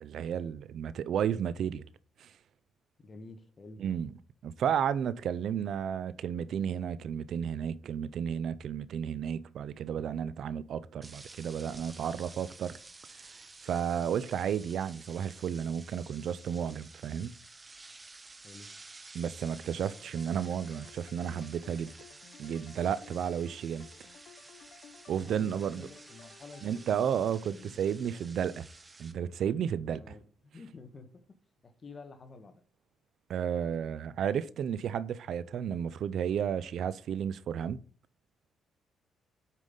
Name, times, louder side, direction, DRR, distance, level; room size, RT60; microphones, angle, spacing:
voice 1, 0.0-1.8 2.2-2.3 3.8-4.1 4.4-12.8 13.6-17.3 19.1-21.9 22.4-23.9 25.1-25.9 26.6-28.7 29.0-30.0 33.3-37.8, right 8 dB, 65° right, 0.4 m, -32 dB
voice 2, 3.0-3.8 18.4-18.7 25.1-25.5 25.8-28.3 30.0-31.1 31.6-32.5, left 3 dB, 35° left, 1.4 m, -50 dB
sound 1, 11.0-29.1, right 3 dB, 25° right, 0.9 m, -52 dB
sound 2, 19.7-27.4, left 8 dB, 65° left, 0.7 m, -57 dB
8.2 x 5.3 x 3.9 m
cardioid pair, 90°, 0 cm